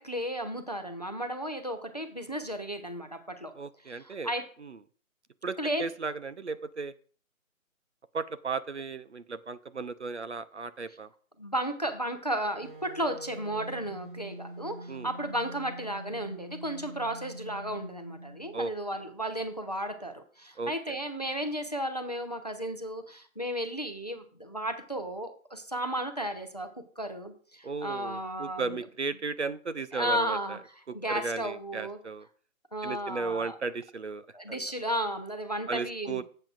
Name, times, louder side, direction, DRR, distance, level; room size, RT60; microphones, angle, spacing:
voice 1, 0.0-3.5 3.9-4.4 5.6-5.8 11.4-26.7 27.0-28.8 29.9-30.6 30.9-32.0 32.7-33.5 34.3-36.2, right 1 dB, 30° left, 8 dB, 0.6 m, -34 dB
voice 2, 3.6-4.3 4.6-4.8 5.4-6.9 8.1-11.1 14.9-15.1 18.5-18.7 20.6-21.0 27.6-30.6 31.1-32.3 32.8-34.2 35.7-36.2, right 4 dB, 55° right, 13 dB, 0.5 m, -35 dB
sound 1, 12.6-18.7, right 1 dB, 35° right, 1.1 m, -44 dB
12.0 x 7.6 x 2.5 m, 0.43 s
figure-of-eight pair, 175°, 42 cm